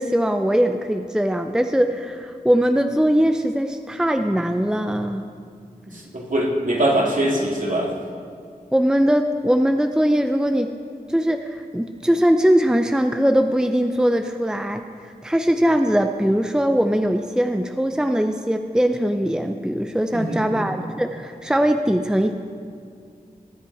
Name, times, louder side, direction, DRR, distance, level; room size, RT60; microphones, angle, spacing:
voice 1, 0.0-5.2 8.7-10.7 11.1-22.3, equal, 5° right, 6 dB, 0.6 m, -21 dB
voice 2, 5.9-7.9 20.1-20.6, right 1 dB, 60° right, -3 dB, 2.5 m, -22 dB
19.5 x 8.0 x 4.8 m, 2.2 s
cardioid pair, 45°, 15 cm